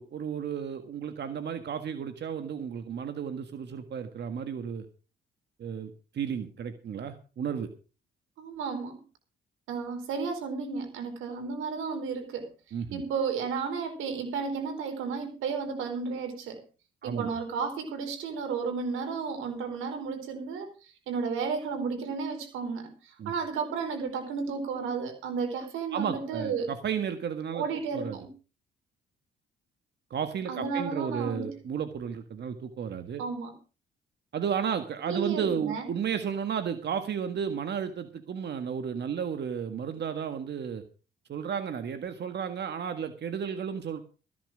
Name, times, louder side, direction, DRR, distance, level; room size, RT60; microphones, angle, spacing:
voice 1, 0.0-4.9 5.6-7.7 12.7-13.0 17.0-17.3 23.2-23.3 25.9-27.6 27.9-28.2 30.1-33.2 34.3-40.8 41.3-44.0, right 7 dB, 60° right, 9 dB, 1.7 m, -33 dB
voice 2, 8.4-9.0 9.7-12.5 12.9-16.6 17.0-20.7 21.1-26.7 27.5-28.3 30.5-31.5 33.2-33.6 35.1-35.9, right 5 dB, 90° right, 6 dB, 4.6 m, -33 dB
15.0 x 10.5 x 5.0 m, 0.34 s
cardioid pair, 90°, 20 cm